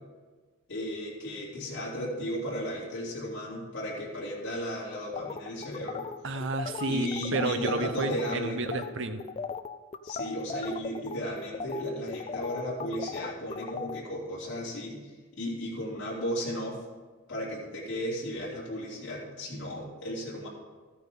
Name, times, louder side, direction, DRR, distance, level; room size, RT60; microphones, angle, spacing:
voice 1, 0.7-6.0 6.9-8.7 10.0-16.8 17.3-20.5, equal, 55° left, -7 dB, 3.1 m, -35 dB
sound 1, 5.1-8.3 8.7-8.9 9.2-14.0, left 5 dB, 30° left, 0.4 m, -37 dB
voice 2, 6.2-9.2, right 3 dB, 60° right, 9 dB, 0.8 m, -31 dB
14.0 x 9.4 x 3.7 m, 1.4 s
head